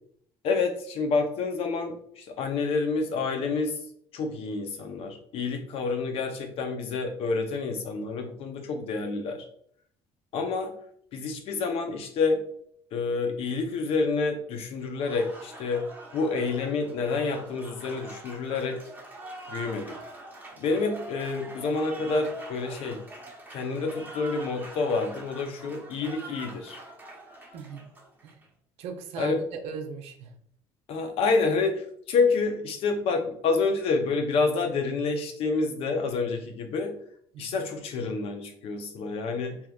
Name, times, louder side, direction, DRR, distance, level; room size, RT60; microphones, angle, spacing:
voice 1, 0.4-3.8 4.1-9.5 10.3-10.7 11.1-12.4 12.9-15.8 16.1-18.8 19.5-20.0 20.6-23.0 23.5-26.8 29.2-29.4 30.9-37.0 37.4-39.6, left 4 dB, 65° left, 5 dB, 0.7 m, -28 dB
Applause, 14.8-28.5, right 2 dB, 15° right, 0.9 m, -44 dB
voice 2, 28.8-30.3 37.3-37.4, right 5 dB, 75° right, 5 dB, 0.6 m, -38 dB
3.5 x 2.8 x 2.3 m, 0.63 s
supercardioid pair, 90°, 11 cm